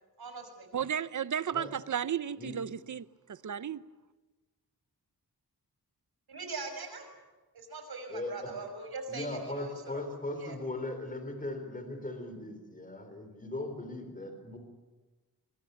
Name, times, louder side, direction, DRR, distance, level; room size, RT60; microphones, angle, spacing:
voice 1, 0.2-0.7 6.3-7.1 7.5-10.0 10.4-10.6, right 3 dB, 75° right, 5.9 m, -41 dB
voice 2, 0.7-3.8, right 8 dB, 50° right, 0.8 m, -34 dB
voice 3, 8.1-8.5 9.1-14.6, left 2 dB, 20° left, 3.9 m, -38 dB
24.5 x 23.0 x 9.4 m
wide cardioid pair, 175°, 38 cm